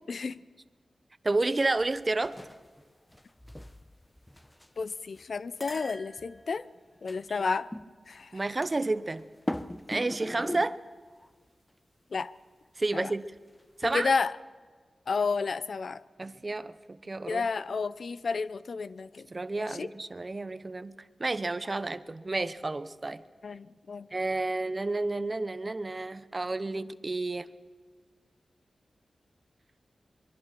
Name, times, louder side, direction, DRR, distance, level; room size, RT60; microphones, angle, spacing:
voice 1, 0.1-0.4 4.8-6.7 7.0-7.7 8.1-8.4 12.1-12.3 12.9-13.1 13.8-14.4 15.1-16.0 17.3-19.3 19.6-19.9 23.4-24.1, left 4 dB, 70° left, 16 dB, 0.6 m, -31 dB
voice 2, 1.2-2.4 7.3-7.4 8.3-9.2 9.9-10.8 12.8-13.3 13.8-14.1 16.2-17.5 19.3-23.2 24.1-27.5, right 2 dB, 35° right, 14 dB, 0.9 m, -31 dB
sound 1, 1.8-2.8 3.1-4.8 5.2-5.3 5.6-7.2 7.7-7.9 8.4-9.2 9.5-10.8 11.2-11.3 13.8-14.0, left 1 dB, 15° left, 0.9 m, -40 dB
23.5 x 23.0 x 6.1 m, 1.5 s
cardioid pair, 70°, 0 cm